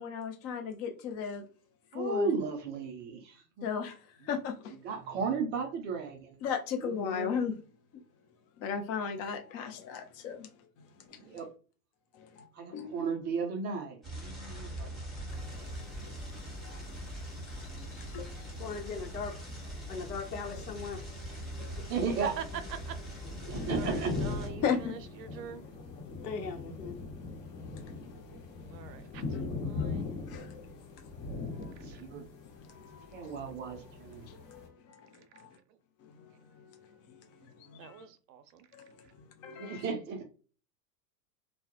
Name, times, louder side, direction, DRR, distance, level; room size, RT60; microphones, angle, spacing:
voice 1, 0.0-1.5 1.9-2.3 3.6-4.0 4.2-4.7 6.4-7.6 8.6-10.5 11.1-11.2 12.1-12.4 12.7-13.1 14.6-14.8 15.3-16.4 16.6-16.8 17.3-17.4 17.9-18.5 21.6-21.7 24.6-25.0 29.3-29.4 29.8-30.0 30.3-30.5 31.5-31.7 32.7-33.5 34.4-35.6 36.0-38.1 38.7-39.8, left 7 dB, 30° left, 0.5 m, -37 dB
voice 2, 1.9-3.2 3.6-3.7 4.8-6.2 7.1-7.3 11.2-11.5 12.6-12.7 12.9-14.9 21.9-22.3 23.5-24.1 32.0-32.2 33.1-34.3 39.6-40.2, right 4 dB, 25° right, 0.4 m, -34 dB
sound 1, 14.0-24.5, right 1 dB, ahead, 0.9 m, -42 dB
sound 2, 15.3-34.7, left 4 dB, 50° left, 1.0 m, -42 dB
voice 3, 18.6-19.4 19.9-21.0 26.2-27.0, left 5 dB, 80° left, 0.8 m, -38 dB
voice 4, 22.2-22.9 23.7-25.6 28.7-30.1 31.8-32.0 33.3-33.5 35.2-35.5 37.4-37.5 37.8-38.7, right 8 dB, 85° right, 0.6 m, -44 dB
2.2 x 2.0 x 2.8 m
hypercardioid pair, 105°, 48 cm